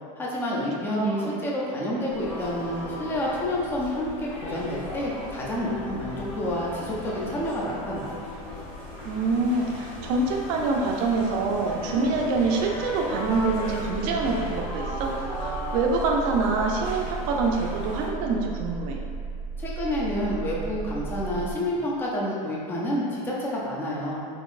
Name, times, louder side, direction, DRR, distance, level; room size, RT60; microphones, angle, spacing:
voice 1, 0.2-8.2 19.6-24.2, left 1 dB, 10° left, -5 dB, 0.4 m, -29 dB
voice 2, 0.9-1.4 9.0-15.1 15.4-19.0, right 3 dB, 45° right, 0 dB, 0.5 m, -26 dB
sound 1, 2.1-18.1, left 1 dB, 30° left, 1.4 m, -36 dB
sound 2, 13.2-21.5, right 4 dB, 70° left, 1.2 m, -35 dB
3.9 x 2.9 x 2.4 m, 2.4 s
supercardioid pair, 160°, 19 cm